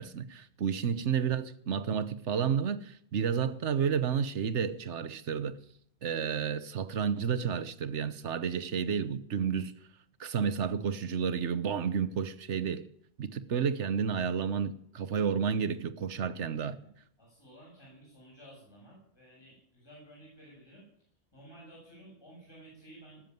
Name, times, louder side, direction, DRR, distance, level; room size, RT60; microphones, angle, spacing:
voice 1, 0.0-5.6 6.0-9.7 10.2-12.9 13.2-16.8, right 7 dB, 90° right, 13 dB, 1.3 m, -31 dB
voice 2, 0.6-1.3 16.8-16.9 17.2-20.9 21.3-23.2, right 1 dB, 20° left, -4 dB, 7.1 m, -54 dB
19.5 x 7.5 x 9.2 m, 0.67 s
omnidirectional pair, 1.2 m